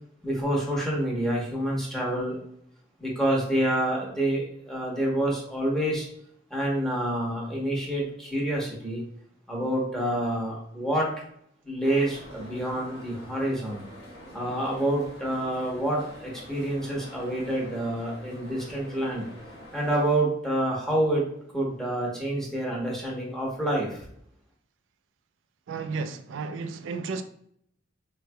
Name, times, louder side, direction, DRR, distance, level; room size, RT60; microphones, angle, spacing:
voice 1, 0.2-2.4 3.0-6.1 6.5-9.0 9.5-11.1 11.6-13.8 14.3-19.3 19.7-21.3 21.5-24.0, right 1 dB, ahead, 1.0 m, -27 dB
sound 1, 11.8-20.2, equal, 85° left, 1.2 m, -46 dB
voice 2, 25.7-27.2, right 4 dB, 75° right, 0.3 m, -33 dB
3.9 x 3.1 x 2.2 m
head